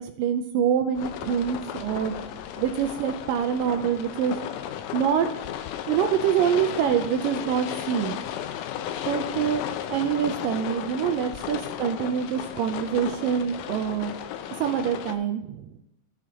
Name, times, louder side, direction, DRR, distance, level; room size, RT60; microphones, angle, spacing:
voice 1, 0.0-2.2 2.5-4.4 4.9-5.3 5.9-8.2 9.1-9.6 9.9-14.2 14.6-15.8, right 8 dB, 80° right, 7 dB, 2.1 m, -25 dB
sound 1, 1.0-15.2, left 10 dB, 80° left, 1.9 m, -34 dB
15.5 x 6.1 x 2.9 m, 0.81 s
omnidirectional pair, 4.2 m